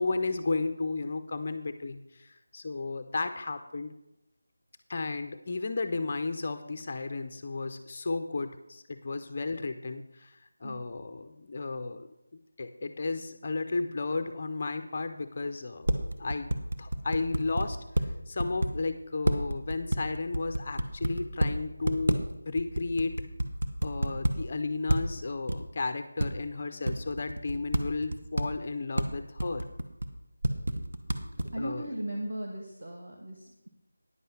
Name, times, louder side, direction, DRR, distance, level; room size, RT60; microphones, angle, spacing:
voice 1, 0.0-3.9 4.9-15.9 16.2-23.2 23.8-29.6 31.6-31.9, left 3 dB, 20° left, 9 dB, 0.4 m, -34 dB
sound 1, 15.4-15.5 15.8-18.0 18.4-18.7 19.2-21.5 21.8-22.3 22.6-24.3 24.9-25.1 25.5-25.6 26.2-26.3 26.9-28.6 29.0-29.1 29.4-30.1 30.4-31.5, right 1 dB, 50° right, 0.9 m, -28 dB
voice 2, 31.1-33.7, right 1 dB, 35° right, -1 dB, 1.1 m, -38 dB
9.7 x 7.5 x 5.7 m, 0.91 s
figure-of-eight pair, 180°, 0 cm